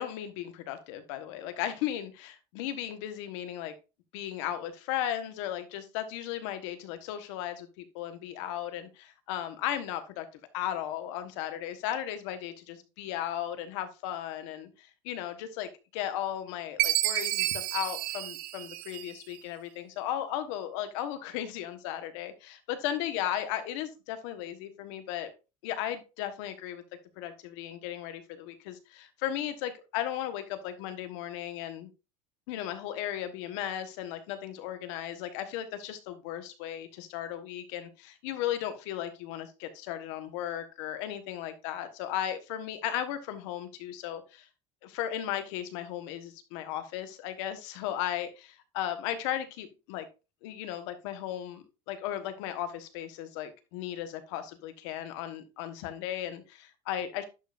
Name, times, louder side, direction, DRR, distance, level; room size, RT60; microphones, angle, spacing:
voice 1, 0.0-3.7 4.1-10.3 10.5-25.3 25.6-26.8 27.2-31.9 32.5-44.5 44.8-50.1 50.4-57.2, left 11 dB, 80° left, 9 dB, 1.3 m, -36 dB
Chime, 16.8-19.3, right 16 dB, 60° right, 0.7 m, -30 dB
11.0 x 5.4 x 2.6 m, 0.29 s
cardioid pair, 180°, 15 cm